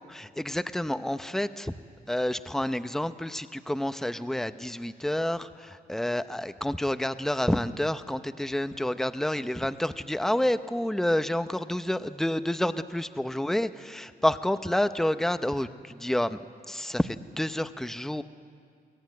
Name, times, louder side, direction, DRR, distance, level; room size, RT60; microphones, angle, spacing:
voice 1, 0.1-1.7 2.1-16.4 16.7-18.2, left 1 dB, ahead, 11 dB, 0.7 m, -29 dB
22.5 x 18.0 x 9.5 m, 2.2 s
cardioid pair, 105°, 17 cm